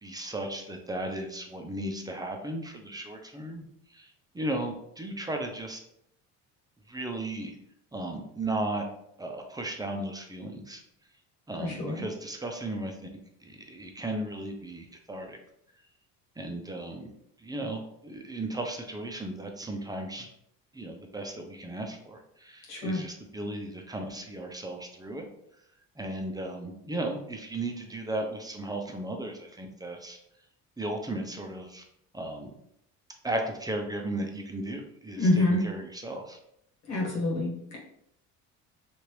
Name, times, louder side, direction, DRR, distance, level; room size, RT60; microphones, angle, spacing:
voice 1, 0.0-3.6 3.9-5.8 6.9-7.5 7.9-8.8 9.2-10.8 11.5-13.1 13.4-15.4 16.4-17.1 17.4-20.3 20.7-25.3 26.0-30.2 30.8-31.8 32.1-32.5 33.2-36.4, right 1 dB, 10° right, 3 dB, 0.6 m, -35 dB
voice 2, 11.6-12.0 22.7-23.0 35.2-35.6 36.9-37.8, left 2 dB, 90° left, -3 dB, 1.2 m, -27 dB
2.8 x 2.5 x 3.2 m, 0.73 s
supercardioid pair, 80°, 38 cm